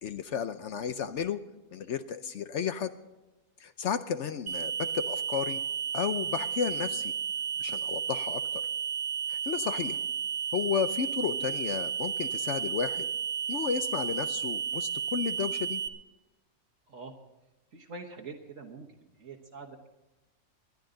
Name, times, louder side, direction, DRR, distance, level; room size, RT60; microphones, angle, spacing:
voice 1, 0.0-1.4 1.7-2.9 3.6-5.6 5.9-7.1 7.6-8.6 9.3-10.0 10.5-13.0 13.5-15.8, left 7 dB, 65° left, 11 dB, 0.8 m, -33 dB
sound 1, 4.5-15.9, right 7 dB, 75° right, 1.6 m, -33 dB
voice 2, 17.7-19.9, right 4 dB, 60° right, 0 dB, 1.6 m, -45 dB
20.5 x 12.0 x 3.9 m, 1.0 s
omnidirectional pair, 1.6 m